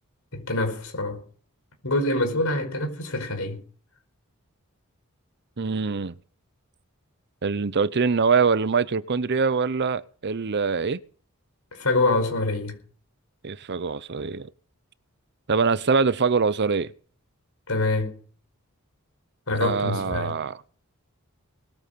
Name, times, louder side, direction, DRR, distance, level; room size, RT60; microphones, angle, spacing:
voice 1, 0.3-1.2 1.8-3.6 11.7-12.8 17.7-18.1 19.5-20.3, left 2 dB, 70° left, 4.9 m, -25 dB
voice 2, 5.6-6.2 7.4-11.0 13.4-14.5 15.5-16.9 19.6-20.6, right 5 dB, 50° right, 0.7 m, -24 dB
20.0 x 9.0 x 6.8 m
head